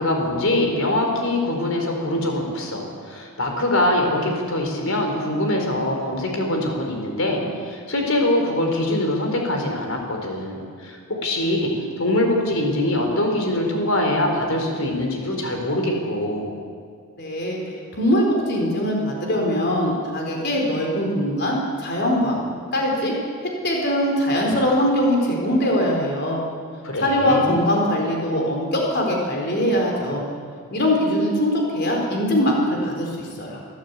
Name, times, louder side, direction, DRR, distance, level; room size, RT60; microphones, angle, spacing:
voice 1, 0.0-11.7 12.0-16.5 26.8-27.5, left 1 dB, 65° left, 2 dB, 4.5 m, -23 dB
voice 2, 17.2-17.6 17.9-22.4 22.7-23.1 23.4-26.4 27.0-30.2 30.7-33.6, equal, 45° left, 0 dB, 4.3 m, -22 dB
24.0 x 13.5 x 8.4 m, 2.2 s
head